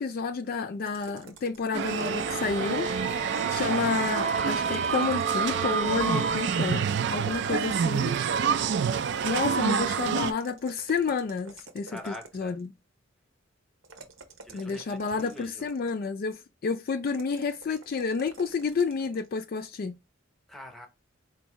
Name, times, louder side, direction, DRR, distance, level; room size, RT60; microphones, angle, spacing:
voice 1, 0.0-2.9 3.5-8.1 8.9-12.7 14.5-20.0, left 4 dB, 50° left, 0.3 m, -30 dB
sound 1, 0.8-2.7 3.7-5.8 7.2-9.2 10.3-12.6 13.8-16.1 17.1-19.3, right 4 dB, 85° right, 0.9 m, -49 dB
sound 2, 1.7-7.4, right 3 dB, 35° right, 0.7 m, -35 dB
sound 3, 1.7-10.3, right 6 dB, 60° right, 0.3 m, -27 dB
voice 2, 3.2-3.5 7.2-7.6 11.9-12.6 14.4-15.7 20.5-20.9, left 1 dB, ahead, 0.8 m, -45 dB
4.5 x 2.5 x 3.0 m
head